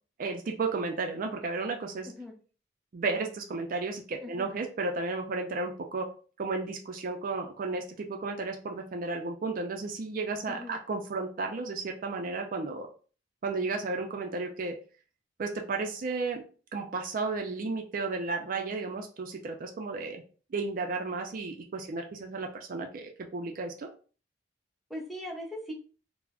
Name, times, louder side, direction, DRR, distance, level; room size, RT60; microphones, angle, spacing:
voice 1, 0.2-2.1 2.9-6.1 6.4-12.9 13.4-14.8 15.4-16.4 16.7-20.2 20.5-23.9, right 3 dB, 50° right, 4 dB, 0.4 m, -33 dB
voice 2, 4.2-4.5 10.5-10.8 24.9-25.7, equal, ahead, 0 dB, 0.5 m, -39 dB
2.4 x 2.0 x 3.4 m, 0.38 s
head